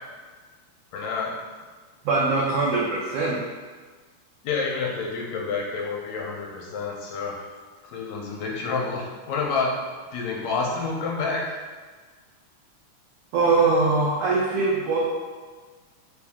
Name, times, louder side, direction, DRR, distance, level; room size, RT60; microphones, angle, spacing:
voice 1, 0.9-1.3 4.4-7.3 7.8-9.7 10.1-11.4, left 4 dB, 80° left, -1 dB, 1.8 m, -28 dB
voice 2, 2.0-3.4 13.3-15.0, right 3 dB, 90° right, -4 dB, 1.3 m, -22 dB
4.8 x 2.7 x 3.5 m, 1.4 s
omnidirectional pair, 3.4 m